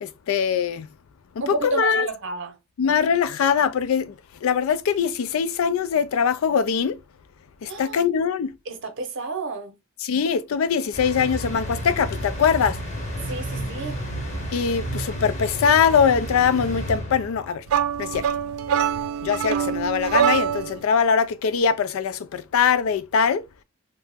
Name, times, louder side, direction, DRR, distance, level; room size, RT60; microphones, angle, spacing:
voice 1, 0.0-0.9 1.4-2.1 2.8-4.1 4.4-7.0 7.6-8.5 10.0-12.8 14.5-17.6 18.0-18.3 19.2-23.4, left 6 dB, 80° left, 0.3 m, -22 dB
voice 2, 1.4-2.6 7.7-8.0 8.7-9.7 13.3-14.0, right 3 dB, 65° right, 0.7 m, -31 dB
sound 1, 10.9-17.6, equal, 35° left, 0.9 m, -31 dB
sound 2, 17.7-20.8, right 8 dB, 85° right, 0.3 m, -24 dB
2.8 x 2.0 x 3.4 m
head